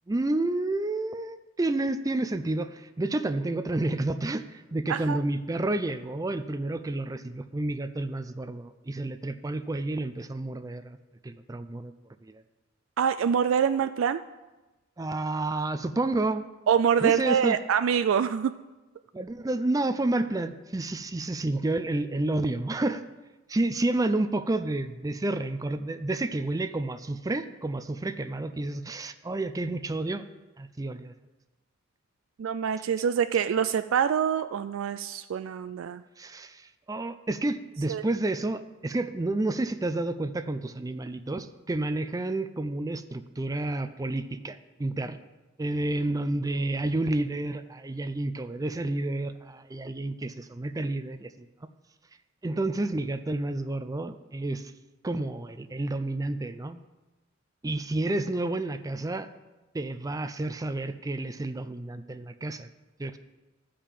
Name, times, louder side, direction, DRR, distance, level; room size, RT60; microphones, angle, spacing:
voice 1, 0.1-11.0 11.2-11.9 12.2-12.4 15.0-16.5 17.0-17.6 19.1-23.1 23.5-30.2 30.6-31.1 36.2-45.2 45.6-51.5 52.4-54.7 55.0-56.8 57.6-59.3 59.7-62.7 63.0-63.2, right 2 dB, 20° right, 11 dB, 0.4 m, -30 dB
voice 2, 4.9-5.2 13.0-14.2 16.7-18.6 32.4-36.0 37.9-38.0, right 7 dB, 85° right, 11 dB, 0.3 m, -25 dB
12.5 x 5.1 x 7.4 m, 1.1 s
head